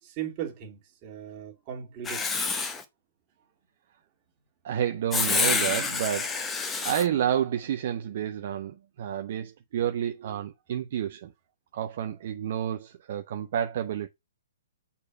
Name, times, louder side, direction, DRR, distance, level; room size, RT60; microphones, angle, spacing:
voice 1, 0.0-2.4, right 9 dB, 35° right, 2.2 m, -38 dB
Writing, 2.0-2.8 5.1-7.0, left 4 dB, 15° left, 1.1 m, -27 dB
voice 2, 4.6-11.3 11.7-14.1, right 9 dB, 50° right, 0.8 m, -30 dB
6.6 x 4.3 x 5.9 m
hypercardioid pair, 130°, 0 cm